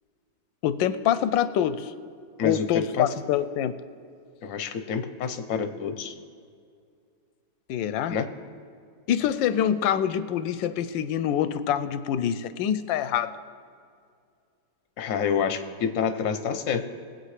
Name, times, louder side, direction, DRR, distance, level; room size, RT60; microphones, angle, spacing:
voice 1, 0.6-1.9 2.4-3.8 7.7-8.2 9.1-13.3, left 10 dB, 85° left, 13 dB, 1.3 m, -25 dB
voice 2, 2.4-3.1 4.4-6.1 8.1-8.3 15.0-16.8, left 6 dB, 60° left, 8 dB, 0.9 m, -28 dB
22.5 x 8.4 x 3.3 m, 2.3 s
omnidirectional pair, 2.0 m